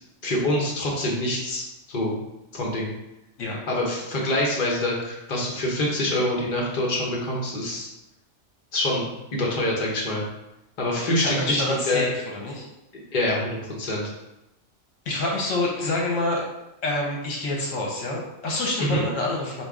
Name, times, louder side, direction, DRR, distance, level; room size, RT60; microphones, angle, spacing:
voice 1, 0.2-2.2 2.5-2.9 3.7-7.9 8.7-10.2 10.8-12.0 13.1-14.1 18.8-19.0, left 1 dB, 40° left, -3 dB, 1.0 m, -25 dB
voice 2, 10.9-12.7 15.1-16.4 16.8-19.6, left 2 dB, 75° left, -2 dB, 1.1 m, -27 dB
4.5 x 2.4 x 3.5 m, 0.92 s
omnidirectional pair, 1.3 m